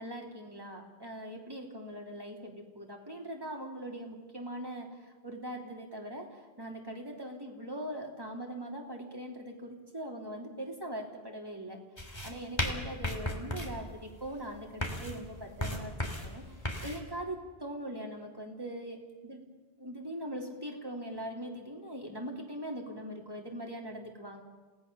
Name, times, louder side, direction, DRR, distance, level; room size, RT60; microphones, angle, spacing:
voice 1, 0.0-11.8 12.2-16.4 16.8-19.4 19.8-24.4, right 1 dB, 20° right, 1 dB, 3.4 m, -41 dB
sound 1, 12.0-17.0, left 1 dB, 25° left, 2.8 m, -36 dB
28.0 x 18.0 x 7.0 m, 1.3 s
omnidirectional pair, 1.0 m